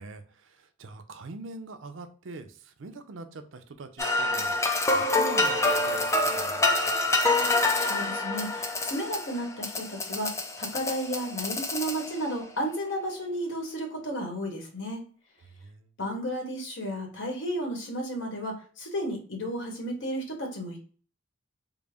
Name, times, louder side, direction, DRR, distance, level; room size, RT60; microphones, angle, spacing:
voice 1, 0.0-4.6 4.9-7.2 15.5-16.1, right 3 dB, 70° right, 8 dB, 0.5 m, -44 dB
sound 1, 4.0-12.3, left 2 dB, 15° left, 0.4 m, -27 dB
voice 2, 7.8-15.0 16.0-20.8, equal, 65° left, 2 dB, 1.1 m, -33 dB
3.9 x 2.0 x 3.4 m, 0.41 s
head